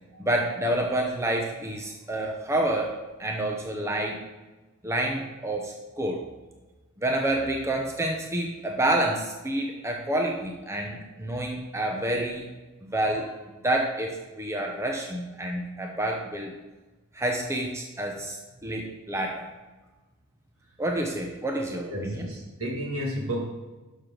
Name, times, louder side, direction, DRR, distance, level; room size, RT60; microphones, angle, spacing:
voice 1, 0.2-2.9 3.2-4.2 4.8-6.2 7.0-12.4 12.8-13.3 13.6-16.5 17.1-18.4 18.6-19.4 20.8-22.3, right 1 dB, 15° right, 1 dB, 0.8 m, -28 dB
voice 2, 21.9-23.5, equal, 65° right, -1 dB, 2.3 m, -31 dB
12.0 x 6.4 x 3.8 m, 1.2 s
head